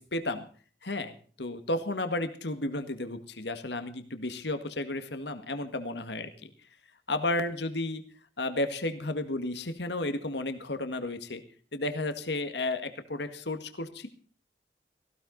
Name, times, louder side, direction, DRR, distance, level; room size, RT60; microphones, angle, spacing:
voice 1, 0.1-0.4 0.8-6.5 7.1-8.0 8.4-11.4 11.7-14.1, left 2 dB, 70° left, 9 dB, 1.9 m, -33 dB
18.0 x 16.5 x 4.0 m, 0.42 s
head